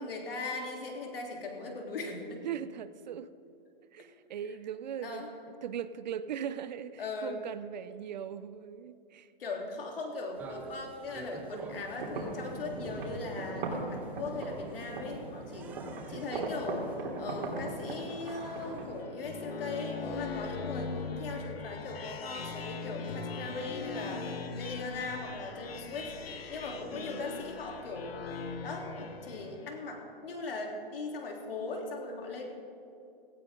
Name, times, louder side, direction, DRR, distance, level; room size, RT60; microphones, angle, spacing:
voice 1, 0.0-2.4 5.0-5.3 7.0-7.4 9.4-15.7 16.1-26.1 26.5-28.1 28.6-32.4, left 3 dB, 75° left, 1 dB, 3.4 m, -39 dB
voice 2, 2.4-3.3 3.9-5.2 5.6-9.3 26.9-27.2, right 8 dB, 50° right, 14 dB, 0.6 m, -39 dB
sound 1, 10.3-19.0, right 4 dB, 5° right, 0.5 m, -51 dB
sound 2, 11.7-18.8, right 2 dB, 65° right, 3.6 m, -39 dB
sound 3, 19.0-29.8, left 4 dB, 90° left, 1.5 m, -40 dB
17.5 x 16.0 x 3.8 m, 2.7 s
hypercardioid pair, 160°, 29 cm